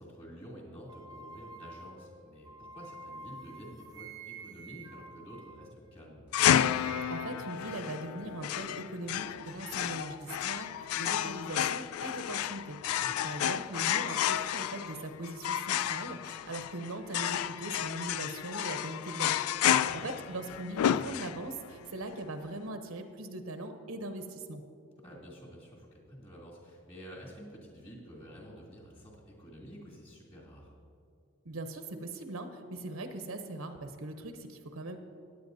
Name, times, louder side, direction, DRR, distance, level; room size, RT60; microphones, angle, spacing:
voice 1, 0.0-6.2 12.9-13.2 19.7-20.0 25.0-30.7, equal, 25° left, -4 dB, 2.6 m, -49 dB
sound 1, 0.9-6.2 6.5-7.6, right 3 dB, 20° right, 0.4 m, -49 dB
sound 2, 6.3-21.7, left 10 dB, 90° left, 0.3 m, -31 dB
voice 2, 7.1-12.8 13.2-24.6 31.4-35.0, right 2 dB, 80° right, 7 dB, 0.8 m, -40 dB
16.5 x 10.0 x 2.7 m, 2.4 s
head